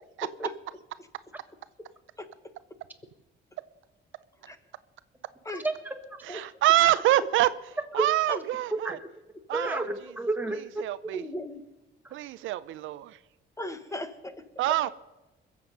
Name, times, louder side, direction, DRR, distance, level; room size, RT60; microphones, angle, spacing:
voice 1, 0.2-0.5 2.2-2.3 4.4-4.6 5.4-5.6 6.3-6.4 8.3-8.4 9.5-9.6 11.1-11.6 13.6-14.3, left 1 dB, 15° left, 9 dB, 1.3 m, -36 dB
voice 2, 5.5-5.9 6.3-6.5 8.0-8.1 8.7-9.0 9.5-10.8, right 2 dB, 10° right, 6 dB, 1.6 m, -30 dB
voice 3, 6.2-7.5 7.9-9.0 9.5-9.9 10.8-11.3 12.1-13.2 14.6-14.9, right 14 dB, 80° right, 15 dB, 0.5 m, -25 dB
22.0 x 7.6 x 5.3 m, 1.0 s
cardioid pair, 90°, 20 cm